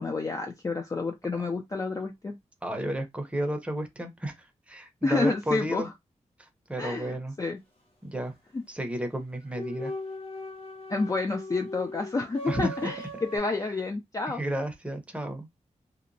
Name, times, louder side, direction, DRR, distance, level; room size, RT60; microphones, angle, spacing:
voice 1, 0.0-2.4 5.0-5.9 6.8-7.6 8.5-8.6 10.9-14.4, left 3 dB, 25° left, 0.4 m, -29 dB
voice 2, 2.6-4.3 4.7-5.9 6.7-7.3 8.0-8.3 8.7-9.9 12.5-12.9 14.3-15.5, right 1 dB, 10° right, 0.7 m, -32 dB
sound 1, 9.5-13.4, left 1 dB, 50° left, 1.3 m, -39 dB
2.8 x 2.1 x 2.5 m
wide cardioid pair, 120°, 12 cm